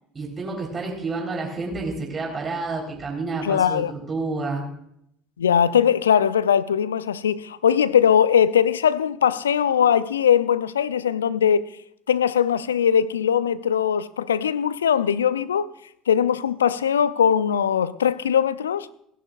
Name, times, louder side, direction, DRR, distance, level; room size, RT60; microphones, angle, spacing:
voice 1, 0.1-3.8 4.1-4.6, right 3 dB, 30° right, 4.1 m, -29 dB
voice 2, 3.4-3.9 5.4-11.6 12.1-15.7 16.1-18.9, left 8 dB, 80° left, 0.5 m, -20 dB
29.5 x 11.0 x 2.5 m
figure-of-eight pair, 65°, 0 cm